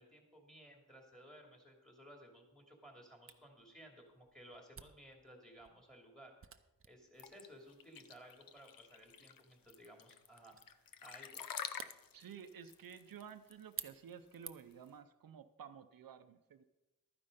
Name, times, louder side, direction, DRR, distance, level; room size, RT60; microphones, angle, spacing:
voice 1, 0.0-6.3 6.8-11.4, equal, ahead, 1 dB, 2.6 m, -58 dB
Camera, 3.3-14.9, right 6 dB, 40° right, 0.6 m, -55 dB
sound 1, 7.2-14.9, left 8 dB, 80° left, 0.6 m, -48 dB
voice 2, 12.1-16.6, right 7 dB, 80° right, 9 dB, 0.6 m, -53 dB
12.0 x 9.7 x 5.1 m, 1.0 s
wide cardioid pair, 120°, 34 cm